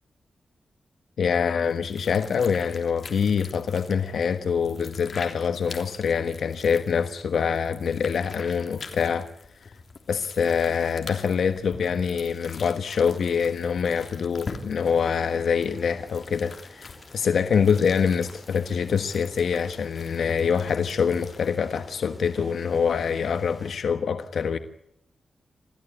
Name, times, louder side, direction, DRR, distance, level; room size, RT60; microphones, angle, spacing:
voice 1, 1.2-9.3 10.1-24.6, left 6 dB, 70° left, 1.4 m, -25 dB
sound 1, 1.6-21.6, left 4 dB, 45° left, 3.5 m, -44 dB
sound 2, 14.8-23.7, left 1 dB, 5° left, 4.2 m, -51 dB
27.5 x 16.0 x 9.9 m
wide cardioid pair, 140°, 0 cm